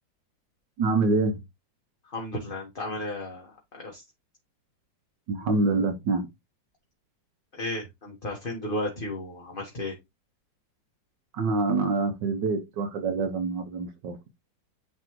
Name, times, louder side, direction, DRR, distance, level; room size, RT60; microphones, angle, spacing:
voice 1, 0.8-1.4 5.3-6.3 11.3-14.2, right 3 dB, 75° right, 1.6 m, -26 dB
voice 2, 2.0-4.0 7.5-9.9, left 1 dB, 30° left, 1.5 m, -34 dB
9.7 x 3.3 x 3.0 m
omnidirectional pair, 2.0 m